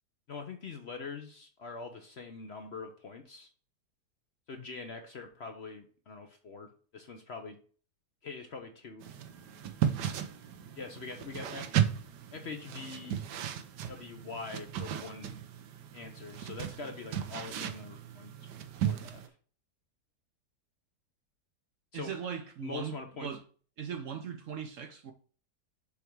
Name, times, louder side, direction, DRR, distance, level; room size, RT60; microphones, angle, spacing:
voice 1, 0.3-3.5 4.5-7.6 8.2-9.0 10.8-11.8 12.3-13.2 13.9-15.4 15.9-18.5 18.8-19.2 21.9-22.1 22.6-23.3, left 4 dB, 50° left, 0.9 m, -43 dB
sound 1, 9.0-19.3, right 9 dB, 90° right, 1.4 m, -35 dB
voice 2, 21.9-23.4 23.8-25.1, right 7 dB, 60° right, 0.9 m, -39 dB
7.1 x 3.5 x 4.5 m
omnidirectional pair, 1.7 m